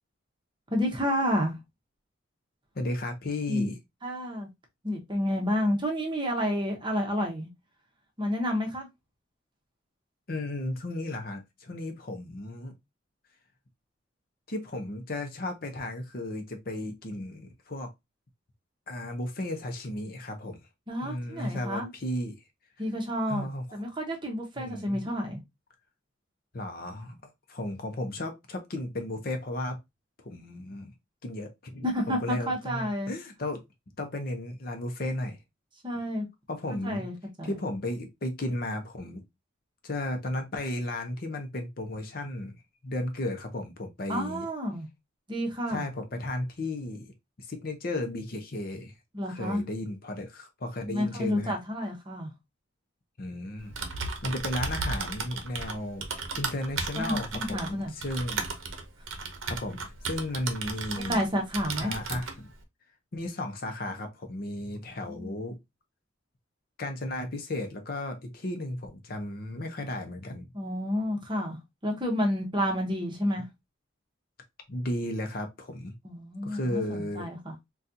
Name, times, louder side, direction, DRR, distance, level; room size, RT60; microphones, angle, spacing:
voice 1, 0.7-1.6 3.5-3.7 4.0-4.5 4.8-7.5 8.2-8.9 20.9-21.9 22.8-25.4 31.8-33.1 35.8-36.2 36.7-37.5 44.1-44.9 45.3-45.9 49.1-49.6 50.9-52.3 53.8-53.9 56.9-57.9 60.9-61.9 65.0-65.4 70.5-73.5 76.0-77.5, equal, 25° right, 0.9 m, -30 dB
voice 2, 2.7-3.8 10.3-12.7 14.5-17.9 18.9-20.6 21.0-22.4 23.3-23.6 24.6-25.0 26.5-27.2 27.5-29.8 30.2-30.9 31.2-33.6 34.0-35.4 36.5-37.1 37.4-39.2 39.8-44.5 45.7-47.1 47.4-48.9 49.3-51.5 53.2-53.7 54.2-56.1 56.3-58.5 59.5-61.2 61.8-62.5 63.1-65.6 66.8-70.5 74.7-75.9 76.4-77.3, left 1 dB, 45° left, 0.6 m, -34 dB
Typing, 53.6-61.3 61.5-62.4, right 4 dB, 75° right, 0.7 m, -35 dB
4.0 x 2.3 x 2.6 m
head